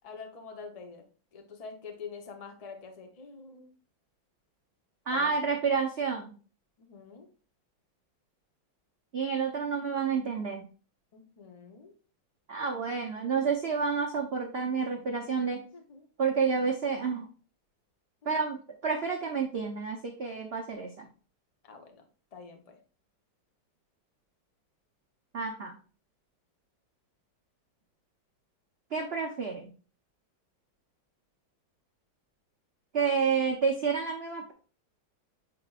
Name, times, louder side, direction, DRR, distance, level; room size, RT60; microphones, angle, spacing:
voice 1, 0.0-3.7 5.1-5.5 6.8-7.3 11.1-11.9 15.5-16.1 18.2-18.5 21.6-22.0 22.3-22.8 33.3-33.5, left 5 dB, 35° left, 4 dB, 0.5 m, -46 dB
voice 2, 5.1-6.3 9.1-10.6 12.5-15.6 16.2-17.2 18.2-21.1 25.3-25.7 28.9-29.7 32.9-34.5, right 5 dB, 65° right, 2 dB, 0.6 m, -29 dB
8.2 x 4.7 x 2.4 m, 0.38 s
omnidirectional pair, 2.2 m